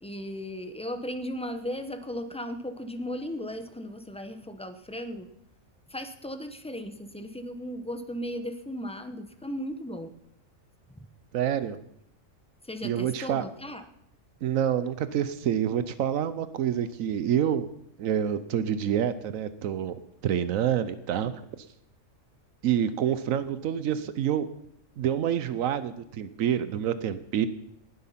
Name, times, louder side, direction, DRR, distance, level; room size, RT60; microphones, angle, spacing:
voice 1, 0.0-5.3 5.9-10.1 10.9-11.1 12.6-13.9, equal, 5° left, 8 dB, 0.8 m, -36 dB
voice 2, 11.3-11.8 12.8-13.4 14.4-17.7 18.0-20.0 20.2-21.6 22.6-24.5 25.0-27.5, right 9 dB, 85° right, 14 dB, 1.1 m, -27 dB
19.0 x 8.0 x 5.7 m, 0.76 s
omnidirectional pair, 1.4 m